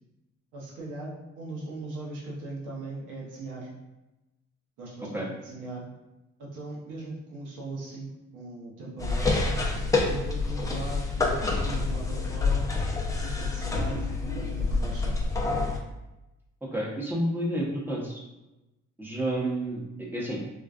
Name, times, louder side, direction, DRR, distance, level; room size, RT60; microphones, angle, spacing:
voice 1, 0.5-3.7 4.8-5.8 6.4-9.3 10.0-12.7 13.1-15.2, right 2 dB, 85° right, -4 dB, 1.0 m, -39 dB
Climbing wooden ladder, 9.0-15.8, left 3 dB, 10° left, 0.5 m, -27 dB
voice 2, 16.7-18.2 19.0-20.4, right 1 dB, 5° right, -4 dB, 0.9 m, -30 dB
3.8 x 2.3 x 2.4 m, 1.0 s
cardioid pair, 90°, 30 cm